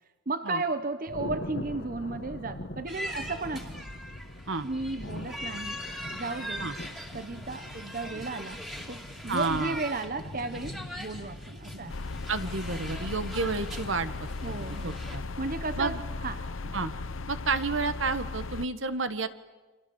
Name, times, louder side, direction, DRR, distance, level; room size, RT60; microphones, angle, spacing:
voice 1, 0.3-3.8 4.6-5.8 6.1-6.7 7.1-8.6 8.9-12.0 14.4-14.9 15.4-16.5, right 3 dB, 45° right, 11 dB, 0.9 m, -34 dB
Thunder, 1.1-17.1, left 1 dB, 50° left, 1.6 m, -43 dB
sound 1, 2.9-15.2, equal, ahead, 2.5 m, -42 dB
voice 2, 9.3-9.8 11.7-11.8 12.3-14.1 14.4-15.2 15.8-16.0 16.7-16.9 17.3-19.3, right 3 dB, 75° right, 11 dB, 1.5 m, -30 dB
sound 2, 11.9-18.7, left 3 dB, 80° left, 0.8 m, -37 dB
29.0 x 26.0 x 7.2 m, 1.2 s
head